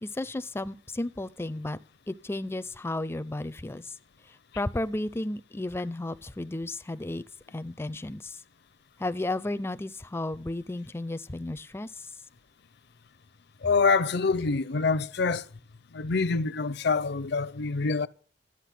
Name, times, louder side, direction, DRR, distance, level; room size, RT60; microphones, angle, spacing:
voice 1, 0.0-1.8 2.1-4.0 4.3-7.2 7.5-8.4 9.0-12.1, left 2 dB, 15° left, 0.4 m, -33 dB
voice 2, 13.6-15.5 15.9-18.1, left 4 dB, 60° left, 0.6 m, -26 dB
12.0 x 8.7 x 5.8 m
head